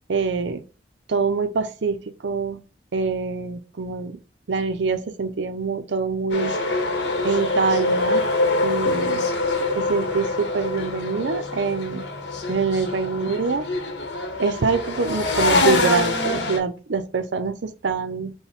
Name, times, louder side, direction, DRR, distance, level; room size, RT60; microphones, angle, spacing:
voice 1, 0.1-0.6 1.1-2.6 2.9-4.2 4.5-6.5 7.2-8.3 8.6-9.2 9.7-12.1 12.5-13.6 14.4-18.3, right 4 dB, 80° right, 0.6 m, -25 dB
sound 1, 6.3-16.6, left 2 dB, 75° left, 1.2 m, -24 dB
5.6 x 2.2 x 4.3 m
head